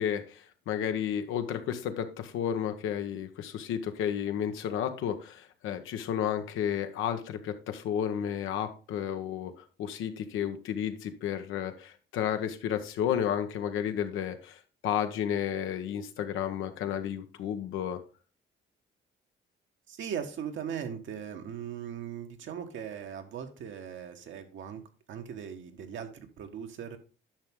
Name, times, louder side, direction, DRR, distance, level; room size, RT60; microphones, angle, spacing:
voice 1, 0.0-18.0, left 9 dB, 90° left, 8 dB, 1.1 m, -32 dB
voice 2, 19.9-24.8 25.1-27.0, right 8 dB, 75° right, 6 dB, 1.4 m, -39 dB
10.5 x 6.0 x 3.7 m, 0.35 s
cardioid pair, 90°, 20 cm